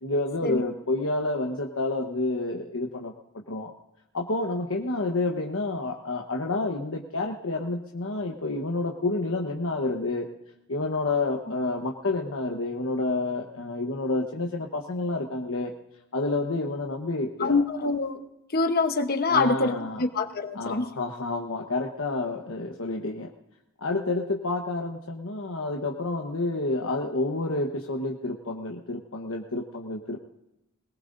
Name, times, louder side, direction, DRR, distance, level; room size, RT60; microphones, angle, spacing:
voice 1, 0.0-3.1 3.5-3.7 4.1-10.3 10.7-15.7 16.1-17.6 19.3-20.0 20.5-23.3 23.8-30.2, left 2 dB, 65° left, 0 dB, 1.1 m, -29 dB
voice 2, 17.4-18.2 18.5-20.9, left 3 dB, 45° left, 8 dB, 1.1 m, -25 dB
21.5 x 19.0 x 2.6 m, 0.91 s
head